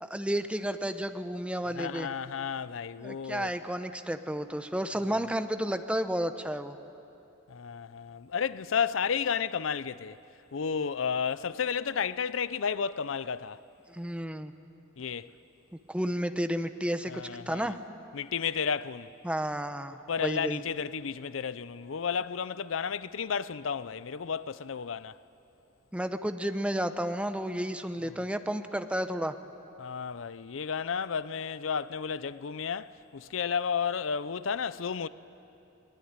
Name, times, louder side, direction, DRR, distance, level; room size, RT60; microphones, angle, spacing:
voice 1, 0.0-2.1 3.0-6.8 13.9-14.5 15.9-17.8 19.2-20.6 25.9-29.3, equal, 5° right, 0.8 m, -32 dB
voice 2, 1.7-3.5 7.5-10.2 10.5-13.6 15.0-15.3 17.1-17.7 18.1-19.1 20.1-25.2 29.8-35.1, left 6 dB, 90° left, 0.6 m, -32 dB
21.5 x 20.5 x 9.6 m
head